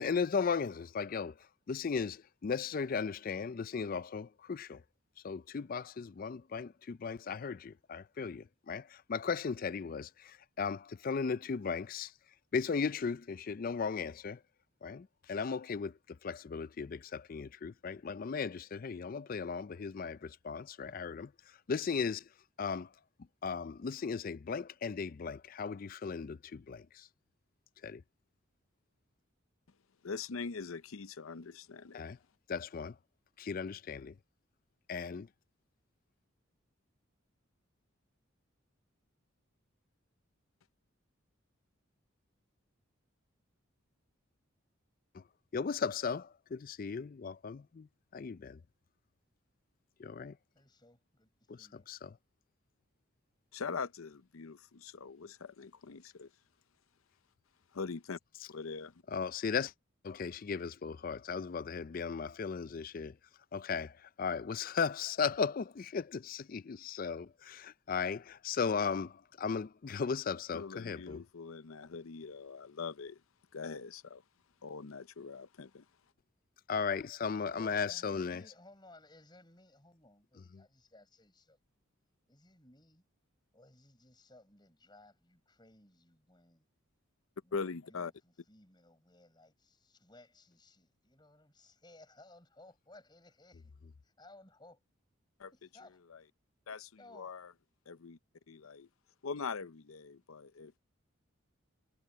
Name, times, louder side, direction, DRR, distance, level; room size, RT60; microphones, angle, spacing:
voice 1, 0.0-1.3 1.7-4.8 5.2-12.1 12.5-14.4 14.8-21.3 21.7-22.2 22.6-22.9 23.4-27.1 27.8-28.0 31.9-32.2 32.5-33.0 33.4-34.1 34.9-35.3 45.1-45.2 45.5-47.9 48.1-48.6 50.0-50.4 51.5-52.2 59.1-59.7 60.0-63.2 63.5-71.2 76.7-78.4 80.5-80.6, left 5 dB, 45° left, 0.4 m, -36 dB
voice 2, 30.0-32.0 53.5-56.3 57.7-58.2 58.5-58.9 70.5-73.2 73.5-74.2 74.6-75.8 87.5-88.1 95.4-95.5 96.1-96.2 96.7-97.5 97.9-98.2 98.5-98.9 99.2-100.7, left 5 dB, 85° left, 0.7 m, -42 dB
voice 3, 50.5-51.3 51.6-51.9 77.5-81.6 82.3-83.0 83.5-86.7 87.4-93.7 94.0-94.8 95.5-96.0 97.0-97.3, left 2 dB, 20° left, 7.4 m, -60 dB
head